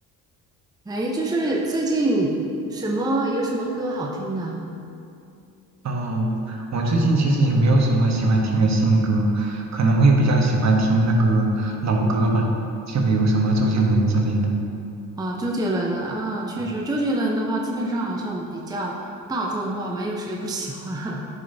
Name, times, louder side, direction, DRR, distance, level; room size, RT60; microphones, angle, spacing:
voice 1, 0.9-2.3 2.7-4.6 15.2-21.2, right 1 dB, 10° right, -1 dB, 0.7 m, -26 dB
voice 2, 5.8-12.5 12.9-14.5, right 2 dB, 45° right, 0 dB, 1.2 m, -20 dB
9.6 x 5.3 x 2.8 m, 2.6 s
cardioid pair, 80°, 37 cm